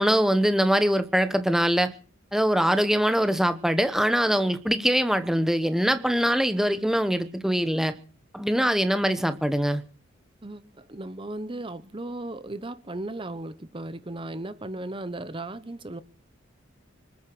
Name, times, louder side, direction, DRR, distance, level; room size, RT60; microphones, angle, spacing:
voice 1, 0.0-1.9 2.3-7.9 8.3-9.8, equal, ahead, 11 dB, 1.0 m, -23 dB
voice 2, 10.4-16.0, right 2 dB, 25° right, 14 dB, 0.8 m, -36 dB
25.0 x 9.0 x 6.1 m, 0.40 s
head